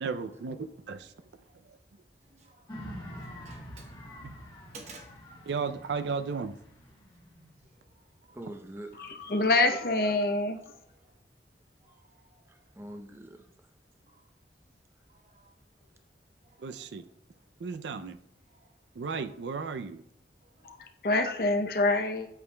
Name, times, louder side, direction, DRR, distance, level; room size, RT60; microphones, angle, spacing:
voice 1, 0.0-1.1 4.2-4.3 5.5-6.6 16.6-17.0 17.6-18.2 19.0-20.0, right 5 dB, 80° right, 0.4 m, -34 dB
voice 2, 2.3-3.9 4.7-5.1 7.9-8.4 11.0-11.1 11.8-12.4 14.0-14.2 15.1-15.5 15.8-15.9 16.4-16.7 18.5-18.7 20.4-20.8, right 3 dB, 40° right, 1.0 m, -54 dB
sound 1, 2.7-7.9, equal, 25° left, 1.2 m, -46 dB
voice 3, 8.3-9.5 12.5-13.5, right 1 dB, 15° right, 0.6 m, -45 dB
voice 4, 9.0-10.6 20.6-22.3, left 2 dB, 55° left, 0.6 m, -26 dB
8.2 x 6.9 x 2.2 m
head